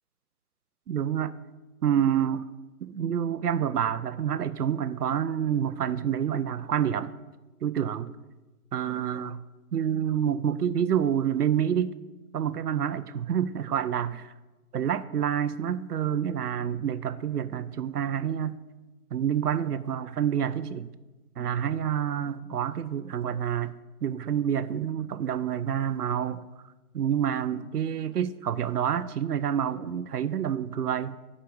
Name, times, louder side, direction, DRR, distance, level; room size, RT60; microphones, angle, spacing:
voice 1, 0.9-1.4 1.8-2.5 2.8-7.1 7.6-8.1 8.7-9.4 9.7-12.0 12.3-14.3 14.7-18.6 19.1-20.9 21.4-23.7 24.0-26.5 26.9-31.2, right 9 dB, 90° right, 0.6 m, -28 dB
5.8 x 5.2 x 6.3 m
hypercardioid pair, 175°, 45 cm